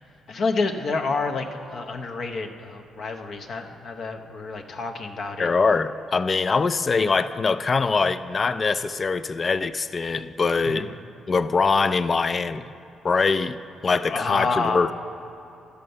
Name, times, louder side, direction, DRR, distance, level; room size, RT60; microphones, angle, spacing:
voice 1, 0.3-5.5 10.6-11.0 14.0-14.8, left 4 dB, 50° left, 4 dB, 0.7 m, -28 dB
voice 2, 5.4-10.9 11.3-12.7 13.0-14.9, left 4 dB, 30° left, 13 dB, 0.3 m, -23 dB
13.0 x 6.7 x 5.3 m, 2.9 s
cardioid pair, 140°, 0 cm